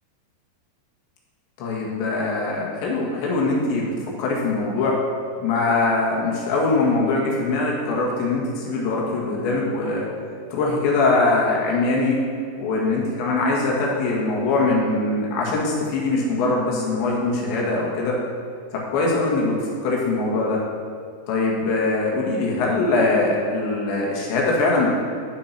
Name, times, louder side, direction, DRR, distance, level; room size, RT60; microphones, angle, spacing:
voice 1, 1.6-5.0 5.4-10.1 10.5-12.2 12.6-18.2 18.7-20.6 21.3-24.9, left 3 dB, 90° left, -3 dB, 4.2 m, -22 dB
12.5 x 7.4 x 5.8 m, 2.2 s
omnidirectional pair, 5.0 m